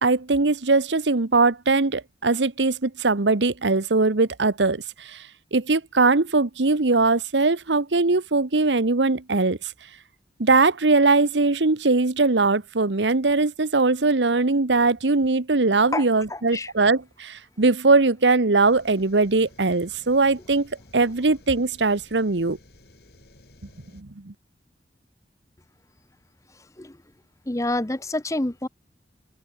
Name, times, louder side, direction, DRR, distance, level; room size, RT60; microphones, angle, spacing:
voice 1, 0.0-5.2 5.5-9.7 10.4-22.6 23.9-24.3, right 3 dB, 90° right, 1.2 m, -21 dB
voice 2, 15.9-16.7 26.5-27.0 27.5-28.7, left 2 dB, 20° left, 0.8 m, -28 dB
sound 1, 18.6-24.0, left 1 dB, 60° left, 5.5 m, -53 dB
open air
head